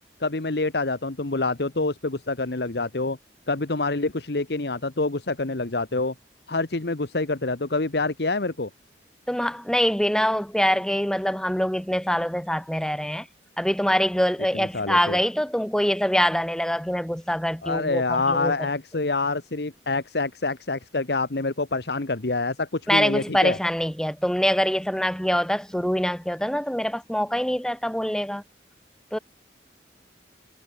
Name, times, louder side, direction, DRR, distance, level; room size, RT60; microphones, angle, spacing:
voice 1, 0.2-3.2 3.5-6.1 6.5-8.7 14.5-15.2 17.6-23.6, left 3 dB, 65° left, 1.2 m, -26 dB
voice 2, 9.3-13.3 13.6-18.5 22.9-28.4 29.1-29.2, equal, 5° left, 2.2 m, -24 dB
head